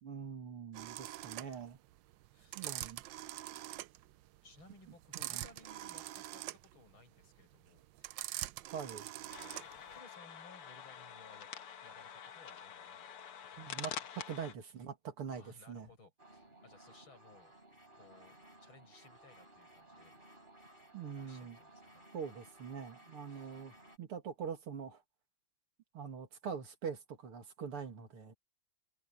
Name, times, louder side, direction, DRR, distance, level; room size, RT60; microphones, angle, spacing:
voice 1, 0.0-1.8 2.5-3.0 5.1-5.4 8.7-9.1 13.6-15.9 20.9-21.6 22.1-25.0 25.9-28.3, right 6 dB, 90° right, 3.2 m, -44 dB
sound 1, 0.7-9.9, right 14 dB, 70° right, 1.2 m, -44 dB
voice 2, 2.3-2.7 4.4-8.4 9.0-9.6 9.9-11.5 11.8-13.1 13.5-14.0 15.3-17.5 17.9-20.1 21.2-22.0 23.3-23.6, left 3 dB, 70° left, 8.4 m, -61 dB
sound 2, 9.3-14.5, left 8 dB, 85° left, 2.4 m, -47 dB
sound 3, 16.2-24.0, right 1 dB, 25° right, 4.5 m, -59 dB
omnidirectional pair, 2.4 m